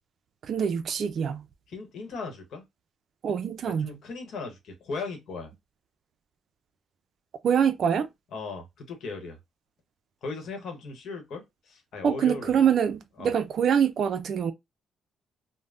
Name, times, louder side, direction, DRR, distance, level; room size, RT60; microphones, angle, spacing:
voice 1, 0.4-1.5 3.2-4.0 7.4-8.1 12.0-14.5, right 8 dB, 60° right, 0.4 m, -25 dB
voice 2, 1.7-2.6 3.7-5.5 8.3-9.4 10.2-12.6 13.2-13.3, left 4 dB, 70° left, 1.0 m, -37 dB
3.3 x 2.1 x 2.4 m
cardioid pair, 90°, 0 cm